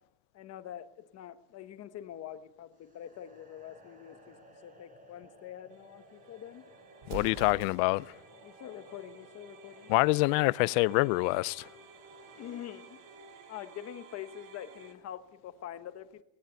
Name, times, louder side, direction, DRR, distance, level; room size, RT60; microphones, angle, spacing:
voice 1, 0.3-6.7 8.4-9.9 12.3-13.0 13.5-16.2, left 11 dB, 35° left, 1.2 m, -45 dB
sound 1, 2.8-13.9, right 1 dB, 20° right, 4.4 m, -59 dB
sound 2, 5.7-14.9, right 4 dB, 75° right, 5.0 m, -55 dB
Explosion, 7.0-8.2, right 8 dB, 60° right, 2.0 m, -44 dB
voice 2, 7.1-8.1 9.9-11.7, left 23 dB, 70° left, 0.6 m, -26 dB
18.5 x 18.0 x 8.0 m
cardioid pair, 170°, 45 cm